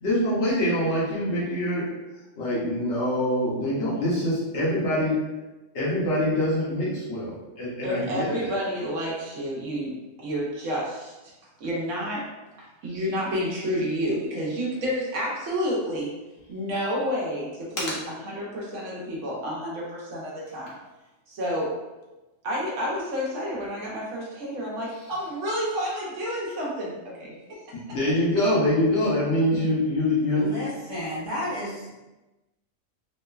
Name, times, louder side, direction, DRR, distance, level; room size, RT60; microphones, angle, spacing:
voice 1, 0.0-1.9 2.4-5.2 5.7-8.5 27.9-30.5, left 1 dB, 60° left, -7 dB, 1.0 m, -24 dB
voice 2, 7.8-9.9 10.2-11.1 11.6-12.3 12.6-16.1 16.5-18.0 18.2-20.7 21.3-21.7 22.4-27.3, equal, 70° right, -4 dB, 1.0 m, -30 dB
voice 3, 30.3-31.9, equal, 30° left, -11 dB, 0.5 m, -32 dB
3.0 x 2.1 x 2.2 m, 1.1 s
omnidirectional pair, 1.4 m